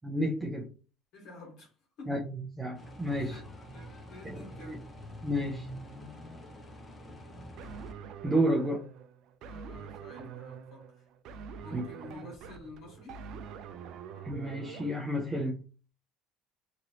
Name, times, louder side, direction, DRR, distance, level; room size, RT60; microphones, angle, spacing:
voice 1, 0.0-0.7 2.1-3.4 4.2-4.8 5.2-5.7 8.2-8.8 11.7-11.8 14.2-15.6, equal, 15° right, 0.6 m, -31 dB
voice 2, 1.1-2.2 3.2-4.8 9.5-11.1 11.6-13.2, left 2 dB, 65° left, 1.5 m, -50 dB
sound 1, 2.7-7.9, equal, 25° left, 0.7 m, -46 dB
sound 2, 7.6-14.9, right 7 dB, 65° right, 0.4 m, -45 dB
3.0 x 2.6 x 2.8 m
cardioid pair, 110°, 0 cm